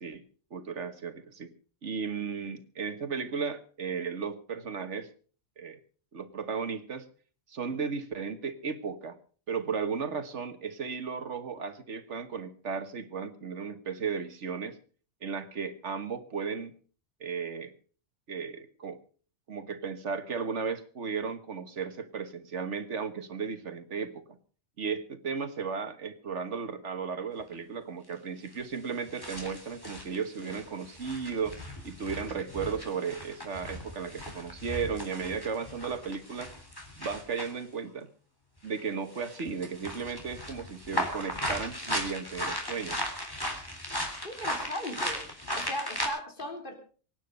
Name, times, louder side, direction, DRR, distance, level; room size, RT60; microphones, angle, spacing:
voice 1, 0.5-1.5 1.8-5.1 5.6-5.8 6.1-7.1 7.5-9.2 9.5-14.8 15.2-16.7 17.2-17.7 18.3-19.0 19.5-24.4 24.8-36.5 37.0-38.1 38.6-43.1, right 5 dB, 70° right, 10 dB, 1.7 m, -35 dB
sound 1, 27.5-27.6 28.5-28.6 29.1-37.6 38.6-38.8 39.1-46.1, equal, 20° left, 3.7 m, -37 dB
voice 2, 44.2-45.2 45.5-46.7, equal, 45° left, 3 dB, 3.7 m, -37 dB
24.0 x 9.4 x 5.2 m, 0.42 s
omnidirectional pair, 1.3 m